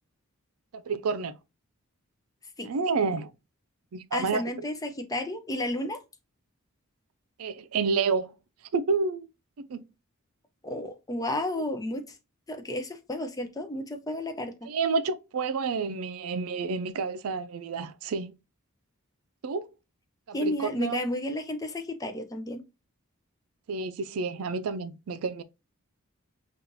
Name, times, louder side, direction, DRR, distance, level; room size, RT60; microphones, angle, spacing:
voice 1, 0.7-1.3 2.6-3.3 3.9-4.4 7.4-8.3 8.7-9.3 9.6-9.8 14.7-18.3 19.4-19.7 20.3-21.0 23.7-25.4, right 4 dB, 85° right, 0.4 m, -29 dB
voice 2, 4.1-6.0 10.6-12.0 12.5-14.7 20.3-22.6, left 1 dB, 15° left, 0.5 m, -32 dB
5.5 x 2.4 x 2.6 m
head